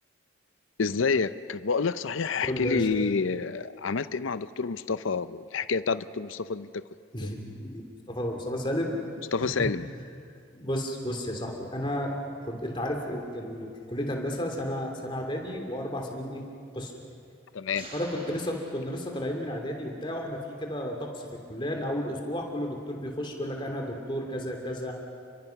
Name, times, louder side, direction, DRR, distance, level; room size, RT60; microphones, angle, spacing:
voice 1, 0.8-6.8 7.2-7.3 9.3-9.9 17.5-17.9, left 5 dB, 85° left, 14 dB, 0.6 m, -28 dB
voice 2, 2.5-3.0 7.1-7.8 8.1-9.0 9.4-9.7 10.5-12.1 12.4-16.4 16.7-16.9 17.9-24.9, equal, 25° left, 2 dB, 2.9 m, -32 dB
sound 1, 17.7-19.6, right 1 dB, 30° right, 4.2 m, -48 dB
30.0 x 22.5 x 5.9 m, 2.4 s
head